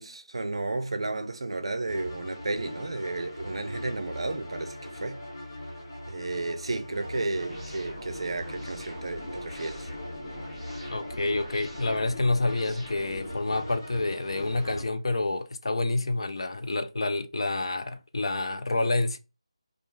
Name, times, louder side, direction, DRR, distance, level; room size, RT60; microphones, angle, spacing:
voice 1, 0.0-5.2 6.1-9.9, right 2 dB, 60° right, 0.5 m, -33 dB
sound 1, 1.9-14.8, left 1 dB, 35° left, 1.3 m, -40 dB
sound 2, 7.5-13.4, equal, 10° left, 0.8 m, -45 dB
voice 2, 10.9-19.2, left 2 dB, 60° left, 0.4 m, -28 dB
2.9 x 2.3 x 2.2 m
figure-of-eight pair, 175°, 3 cm